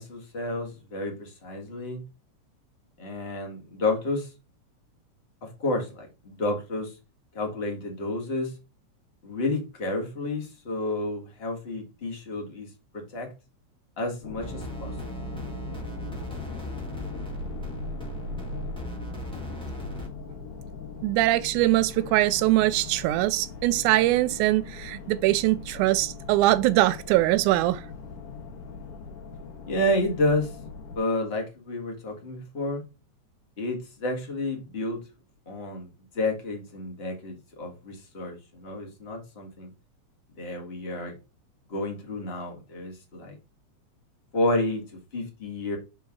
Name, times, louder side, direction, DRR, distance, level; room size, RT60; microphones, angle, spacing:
voice 1, 0.0-2.0 3.0-4.3 5.4-6.9 7.3-8.5 9.2-12.7 13.1-13.3 14.0-14.9 29.7-30.6 30.9-32.8 33.6-35.0 35.5-35.9 36.1-39.7 40.4-41.1 41.7-43.3 44.3-44.8 45.1-45.8, left 2 dB, 30° left, 1.3 m, -30 dB
sound 1, 14.2-31.0, left 5 dB, 60° left, 1.9 m, -40 dB
sound 2, 14.4-20.1, right 1 dB, 5° left, 0.4 m, -37 dB
voice 2, 21.0-27.8, right 16 dB, 85° right, 2.0 m, -22 dB
6.9 x 3.9 x 3.6 m
omnidirectional pair, 3.5 m